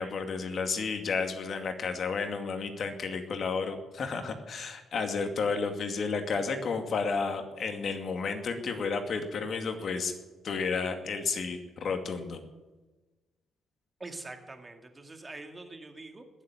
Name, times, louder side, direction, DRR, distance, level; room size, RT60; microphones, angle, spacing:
voice 1, 0.0-10.1 10.4-12.4, left 5 dB, 55° left, 6 dB, 2.2 m, -32 dB
voice 2, 14.0-16.4, right 2 dB, 20° right, 5 dB, 2.2 m, -44 dB
19.5 x 7.4 x 9.8 m, 1.2 s
cardioid pair, 90°, 0 cm